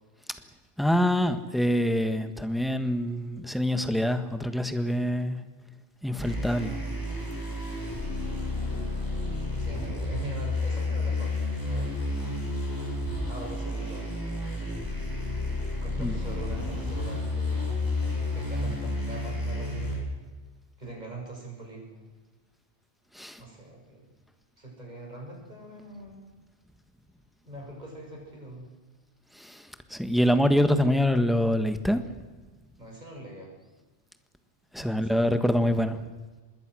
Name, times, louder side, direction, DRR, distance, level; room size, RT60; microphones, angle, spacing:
voice 1, 0.8-5.4 6.0-6.8 16.0-16.2 23.2-23.4 29.4-29.6 29.9-32.0 34.7-36.0, equal, ahead, 9 dB, 1.4 m, -25 dB
sound 1, 6.2-19.9, left 2 dB, 15° left, 8.1 m, -31 dB
voice 2, 9.6-12.1 13.3-14.1 15.7-20.0 20.8-22.0 23.4-24.1 24.6-26.2 27.4-28.6 32.8-33.5 34.8-35.5, right 2 dB, 35° right, -1 dB, 6.9 m, -43 dB
26.0 x 21.0 x 6.3 m, 1.3 s
omnidirectional pair, 1.2 m